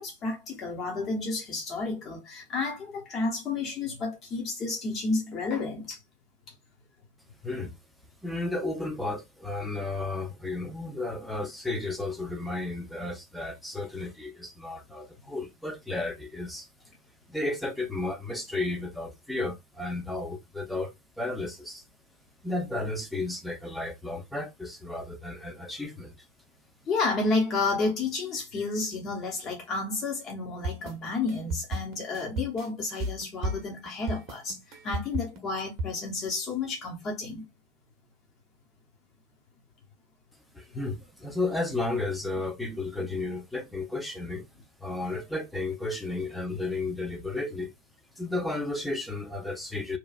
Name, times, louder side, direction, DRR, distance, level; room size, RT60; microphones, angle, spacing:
voice 1, 0.0-6.0 26.9-37.4, left 3 dB, 30° left, 0.9 m, -31 dB
voice 2, 7.4-7.8 8.2-16.7 17.3-21.8 22.4-26.3 40.5-44.5 44.8-47.7 48.2-50.0, left 2 dB, ahead, 0.6 m, -33 dB
sound 1, 30.6-35.9, right 1 dB, 35° right, 0.8 m, -33 dB
2.9 x 2.3 x 2.3 m
figure-of-eight pair, 90°, 0 cm